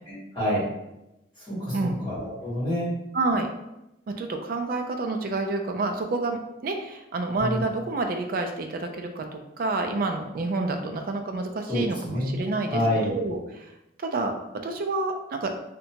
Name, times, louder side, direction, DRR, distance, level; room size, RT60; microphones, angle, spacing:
voice 1, 0.1-0.6 1.5-1.7 2.0-2.9 7.4-7.6 11.7-12.4 12.7-13.1, equal, 25° left, -12 dB, 1.4 m, -27 dB
voice 2, 3.1-3.5 4.1-9.3 9.6-13.7 14.0-14.3 14.6-15.5, right 3 dB, 50° right, 5 dB, 0.3 m, -28 dB
2.7 x 2.1 x 2.7 m, 0.91 s
head